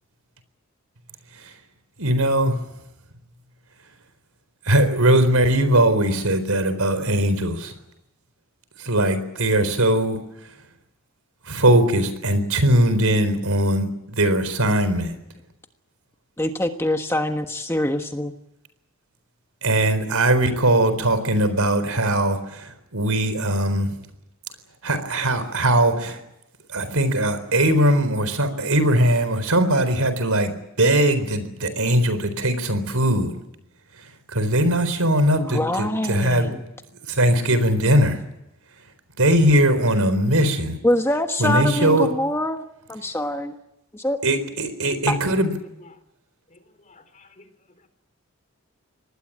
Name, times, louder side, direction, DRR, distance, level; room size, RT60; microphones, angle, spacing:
voice 1, 2.0-2.6 4.7-7.7 8.8-10.2 11.5-15.1 19.6-23.9 24.8-26.2 26.7-33.3 34.3-36.5 37.1-38.2 39.2-40.8 41.4-42.1 44.2-45.5, right 1 dB, 85° right, 12 dB, 4.1 m, -20 dB
voice 2, 16.4-18.3 35.3-36.6 40.8-42.6 42.9-43.5 43.9-44.2 45.1-45.2, left 1 dB, 10° left, 5 dB, 1.3 m, -24 dB
voice 3, 46.5-47.5 47.8-47.9, left 3 dB, 35° left, 9 dB, 3.5 m, -51 dB
25.0 x 19.5 x 8.7 m, 0.86 s
head